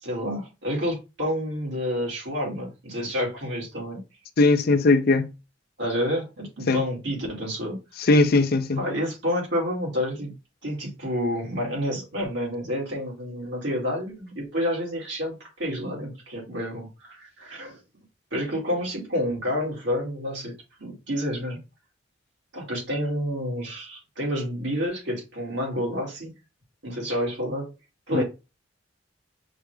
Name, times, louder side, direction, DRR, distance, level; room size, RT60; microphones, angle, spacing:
voice 1, 0.0-4.0 5.8-7.8 8.8-10.3 10.6-17.8 18.3-20.5 20.8-21.6 22.5-26.3 26.8-27.7 28.1-28.2, equal, 70° right, 2.3 m, -29 dB
voice 2, 4.4-5.3 6.7-6.8 8.1-8.8 28.1-28.2, left 3 dB, 55° left, 0.5 m, -19 dB
5.6 x 2.4 x 3.2 m
head